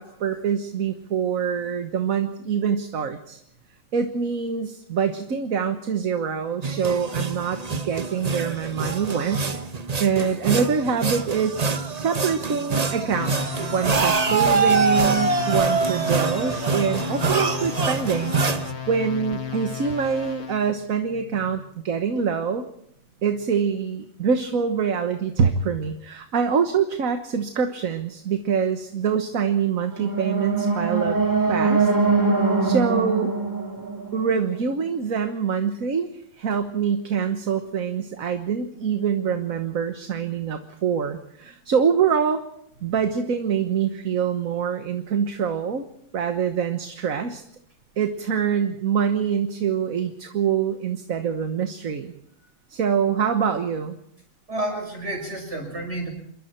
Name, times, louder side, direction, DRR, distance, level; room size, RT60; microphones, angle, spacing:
voice 1, 0.0-3.4 3.9-9.6 10.0-11.6 12.0-22.7 23.2-31.2 31.5-31.9 32.6-33.3 34.1-36.1 36.4-42.4 42.8-45.8 46.1-47.4 48.0-52.1 52.7-54.0, right 7 dB, 70° right, 7 dB, 1.7 m, -25 dB
sound 1, 6.6-18.7, right 4 dB, 30° right, 1.0 m, -25 dB
sound 2, 13.1-20.7, left 6 dB, 50° left, 1.6 m, -33 dB
sound 3, 29.8-34.9, right 4 dB, 15° right, 2.2 m, -23 dB
voice 2, 54.5-56.1, right 1 dB, 50° right, 2 dB, 6.5 m, -30 dB
28.0 x 22.5 x 4.5 m, 0.71 s
omnidirectional pair, 1.5 m